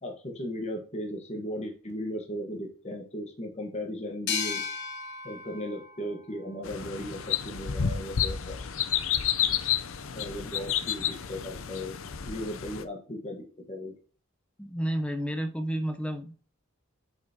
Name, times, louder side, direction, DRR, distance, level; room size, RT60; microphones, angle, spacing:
voice 1, 0.0-4.6 5.2-8.6 10.1-13.9, equal, 35° left, 2 dB, 1.3 m, -37 dB
sound 1, 4.3-7.6, left 6 dB, 55° left, 1.1 m, -37 dB
sound 2, 6.7-12.8, left 9 dB, 85° left, 0.6 m, -30 dB
voice 2, 14.6-16.3, right 1 dB, 5° left, 7 dB, 0.7 m, -31 dB
7.9 x 5.5 x 2.8 m, 0.40 s
head